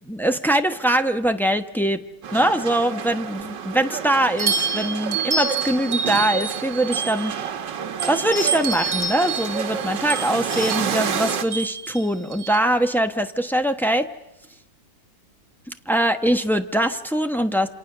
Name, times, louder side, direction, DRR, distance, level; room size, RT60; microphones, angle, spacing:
voice 1, 0.1-2.0 2.3-7.3 8.1-14.1 15.9-17.7, right 1 dB, ahead, 6 dB, 0.7 m, -22 dB
sound 1, 2.2-11.5, right 7 dB, 80° right, 1.9 m, -30 dB
sound 2, 4.4-7.5 8.0-12.6, right 4 dB, 55° right, 3.7 m, -28 dB
29.0 x 26.5 x 6.8 m, 0.91 s
omnidirectional pair, 1.9 m